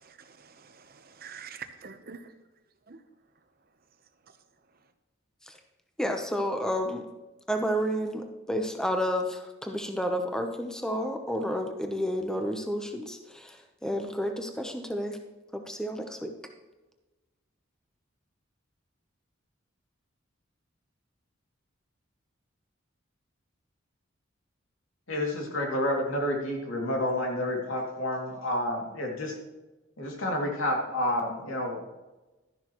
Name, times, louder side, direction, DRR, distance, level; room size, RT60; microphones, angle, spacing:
voice 1, 0.3-2.3 2.9-3.0, right 6 dB, 45° right, 8 dB, 0.8 m, -45 dB
voice 2, 6.0-7.0 7.5-15.2 15.5-16.3, equal, 5° left, 4 dB, 0.8 m, -31 dB
voice 3, 25.1-29.4 30.0-31.9, left 1 dB, 85° left, 0 dB, 2.5 m, -29 dB
12.5 x 11.0 x 3.1 m, 1.1 s
head